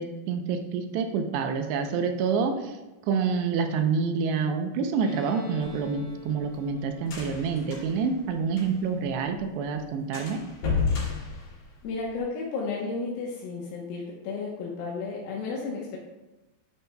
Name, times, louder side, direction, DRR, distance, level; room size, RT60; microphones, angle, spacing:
voice 1, 0.0-2.8 3.1-10.4, right 5 dB, 80° right, 5 dB, 2.7 m, -27 dB
Bowed string instrument, 5.0-8.6, left 5 dB, 25° left, 3.2 m, -47 dB
sound 1, 5.6-9.0 9.3-9.4 9.7-9.8 10.1-12.2, left 5 dB, 50° left, 3.9 m, -32 dB
voice 2, 11.8-16.0, left 4 dB, 70° left, -3 dB, 2.4 m, -33 dB
9.9 x 9.4 x 2.3 m, 1.0 s
omnidirectional pair, 5.2 m